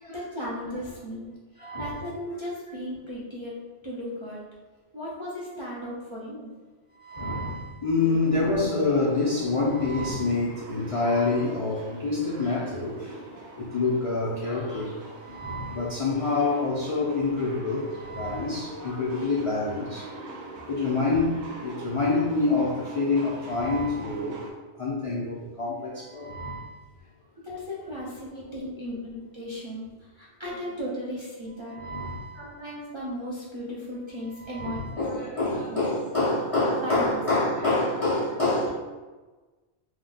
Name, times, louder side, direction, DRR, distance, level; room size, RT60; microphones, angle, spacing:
voice 1, 0.1-1.3 1.8-3.6 3.8-4.4 4.9-6.5 27.4-29.9 30.2-31.8 32.3-35.1 35.7-35.8 36.8-37.2 37.6-37.7 38.3-38.7, left 1 dB, 35° right, -7 dB, 0.5 m, -36 dB
voice 2, 1.6-2.0 7.0-13.1 13.6-14.9 15.2-20.0 20.7-24.4 24.8-26.7 31.7-32.4 34.4-38.7, left 3 dB, 50° left, -6 dB, 0.4 m, -27 dB
sound 1, 8.0-24.5, right 2 dB, 85° right, 0.9 m, -43 dB
2.7 x 2.2 x 3.8 m, 1.3 s
omnidirectional pair, 1.2 m